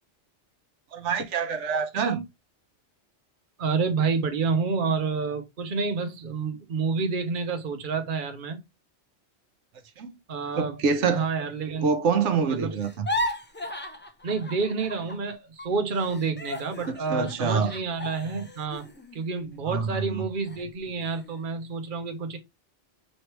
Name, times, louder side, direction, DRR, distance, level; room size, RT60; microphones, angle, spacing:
voice 1, 0.9-2.3 10.0-10.1 10.6-11.2 11.8-13.1 16.8-17.7 19.7-20.2, right 5 dB, 90° right, 1.2 m, -26 dB
voice 2, 3.6-8.6 10.3-10.8 11.1-11.9 12.5-12.8 14.2-18.8 19.1-22.4, right 4 dB, 50° right, 0.9 m, -29 dB
sound 1, 12.8-15.3 15.6-20.0 20.4-20.6 21.0-21.5, left 1 dB, 15° left, 0.5 m, -36 dB
5.4 x 3.2 x 2.9 m
omnidirectional pair, 1.2 m